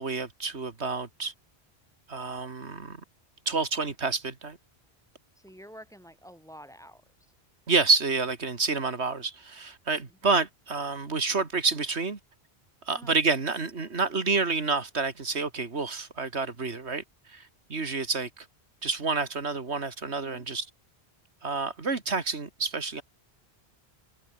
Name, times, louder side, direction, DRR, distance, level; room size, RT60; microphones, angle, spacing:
voice 1, 0.0-1.3 2.1-3.0 3.5-4.6 7.7-12.2 12.9-17.0 17.3-18.5 18.8-20.7 21.4-23.0, right 4 dB, 90° right, 2.6 m, -28 dB
voice 2, 5.4-7.0 12.9-13.2 20.2-20.4, equal, 5° left, 5.0 m, -48 dB
omnidirectional pair, 1.1 m